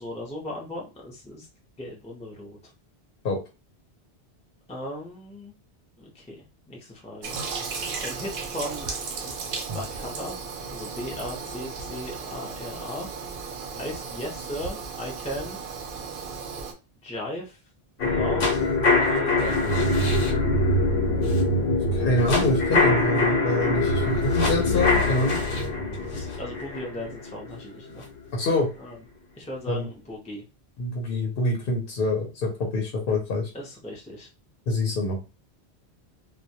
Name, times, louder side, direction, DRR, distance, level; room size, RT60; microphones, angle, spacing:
voice 1, 0.0-1.5 1.8-2.6 4.7-5.5 6.0-7.4 8.0-8.9 9.2-9.3 9.7-10.4 10.7-13.1 13.7-15.6 17.0-17.6 18.0-18.5 18.9-19.9 26.1-28.0 28.8-29.0 29.4-30.4 33.5-34.3, left 1 dB, 10° left, -2 dB, 0.4 m, -37 dB
Toilet flush, 7.2-16.7, right 5 dB, 60° right, 0.6 m, -35 dB
sound 1, 18.0-28.0 28.4-28.5, left 2 dB, 85° left, 1.0 m, -23 dB
voice 2, 21.7-25.4 28.3-28.7 29.7-29.9 30.8-33.5 34.7-35.2, left 1 dB, 65° left, 0 dB, 0.8 m, -26 dB
2.2 x 2.1 x 2.7 m, 0.30 s
omnidirectional pair, 1.1 m